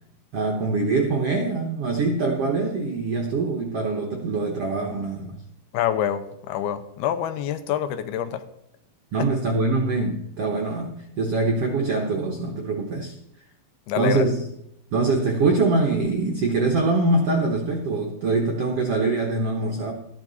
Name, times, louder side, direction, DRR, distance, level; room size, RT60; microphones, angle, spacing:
voice 1, 0.3-5.4 9.1-13.1 14.0-14.5 14.9-19.9, right 3 dB, 75° right, 2 dB, 1.3 m, -24 dB
voice 2, 5.7-8.4 13.9-14.2, left 10 dB, 90° left, 11 dB, 2.7 m, -26 dB
13.5 x 10.5 x 4.0 m, 0.78 s
omnidirectional pair, 4.5 m